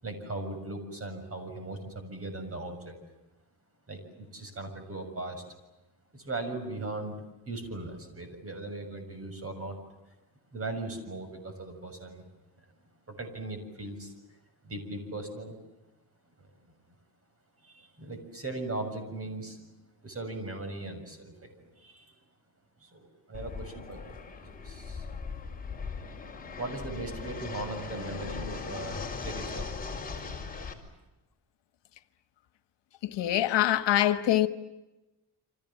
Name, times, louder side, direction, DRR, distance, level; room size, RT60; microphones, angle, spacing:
voice 1, 0.0-3.0 3.9-5.4 6.1-9.8 10.5-12.2 12.6-12.7 13.1-14.1 14.6-15.6 16.4-16.5 17.6-19.7 20.0-22.1 22.8-24.2 24.5-25.1 26.6-29.7, right 2 dB, 35° right, 6.9 m, -38 dB
Fixed-wing aircraft airplane, 23.3-30.7, left 4 dB, 20° left, 4.6 m, -39 dB
voice 2, 33.0-34.5, left 12 dB, 80° left, 1.6 m, -24 dB
30.0 x 25.5 x 7.3 m
cardioid pair, 130°, 42 cm